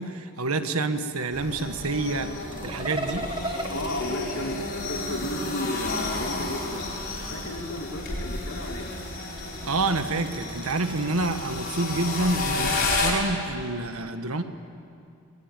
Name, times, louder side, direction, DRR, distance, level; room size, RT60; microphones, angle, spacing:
voice 1, 0.0-3.3 9.6-14.4, right 2 dB, 85° right, 8 dB, 1.5 m, -28 dB
sound 1, 1.3-13.1, left 2 dB, 50° left, 5.9 m, -32 dB
sound 2, 2.5-5.3 6.5-8.1 8.6-12.9, right 1 dB, 20° right, 1.1 m, -39 dB
voice 2, 3.7-4.6 4.9-6.9 7.3-8.9, left 1 dB, 70° left, 3 dB, 2.7 m, -33 dB
22.5 x 21.5 x 9.1 m, 2.5 s
head